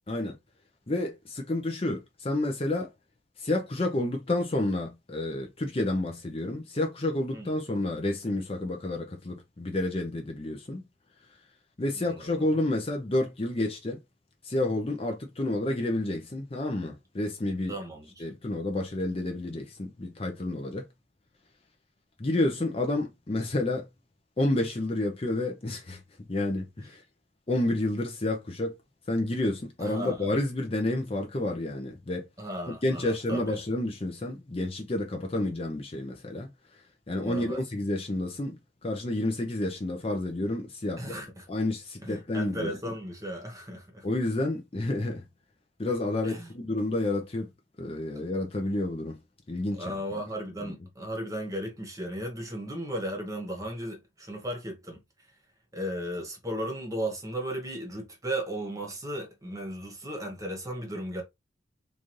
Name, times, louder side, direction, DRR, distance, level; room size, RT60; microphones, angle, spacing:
voice 1, 0.9-2.9 3.4-10.8 11.8-14.0 14.4-17.7 18.2-20.8 22.2-23.9 24.4-26.0 26.3-27.0 27.5-28.8 29.1-32.3 32.7-36.5 37.1-38.6 38.8-41.1 41.5-42.9 44.0-45.2 45.8-47.5 47.8-49.2 49.5-50.0 50.6-50.7, left 1 dB, 30° left, 0.6 m, -30 dB
voice 2, 12.0-12.5 17.7-18.2 29.8-30.3 32.4-33.6 37.2-37.6 41.0-41.5 42.0-44.0 46.2-46.5 49.7-55.0 55.7-61.2, right 1 dB, 15° right, 1.1 m, -35 dB
3.9 x 2.6 x 3.1 m
head